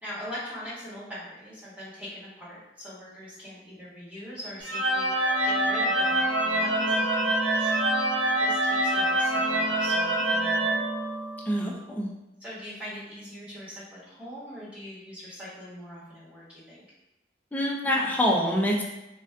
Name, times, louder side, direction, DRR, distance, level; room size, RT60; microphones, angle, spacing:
voice 1, 0.0-7.8 8.4-10.8 12.4-16.8, equal, 10° right, -10 dB, 1.1 m, -41 dB
sound 1, 4.6-11.6, right 1 dB, 70° right, 0.5 m, -25 dB
voice 2, 11.5-12.1 17.5-18.8, equal, 10° left, -3 dB, 0.4 m, -25 dB
3.5 x 2.4 x 2.2 m, 0.94 s
head